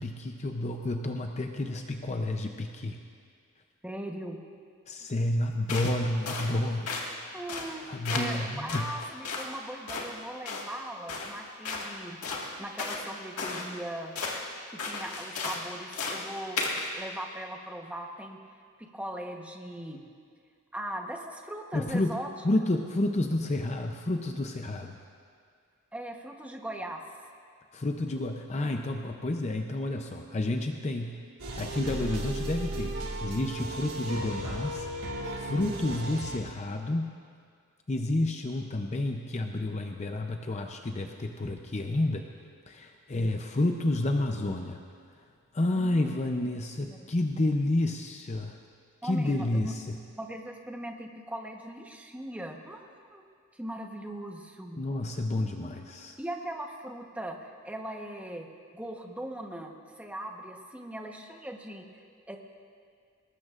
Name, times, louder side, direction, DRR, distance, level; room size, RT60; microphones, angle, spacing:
voice 1, 0.0-3.0 4.9-7.0 7.9-8.9 21.7-22.1 22.4-25.0 27.7-31.2 31.6-32.9 33.2-34.9 35.4-37.2 37.9-42.3 42.7-44.8 45.5-48.6 49.0-50.0 54.8-56.2, left 1 dB, 30° left, 4 dB, 0.6 m, -30 dB
voice 2, 3.8-4.4 7.3-12.2 12.6-14.2 14.7-18.4 18.8-20.1 20.7-22.3 25.9-27.0 45.7-46.1 46.9-47.1 49.0-49.7 50.2-53.2 53.5-54.8 56.2-58.5 58.7-62.4, right 1 dB, 5° right, 2 dB, 1.0 m, -39 dB
sound 1, 5.7-6.0 6.3-6.5 6.9-7.1 7.5-7.7 8.1-8.4 8.7-9.5 9.9-10.1 10.5-10.7 11.1-11.3 11.7-11.9 12.2-13.1 13.4-13.7 14.2-14.4 14.8-15.6 15.9-16.3 16.6-16.9, left 4 dB, 90° left, 1.8 m, -34 dB
sound 2, 31.4-36.4, right 1 dB, 85° right, 2.1 m, -35 dB
21.5 x 19.0 x 2.5 m, 2.1 s
head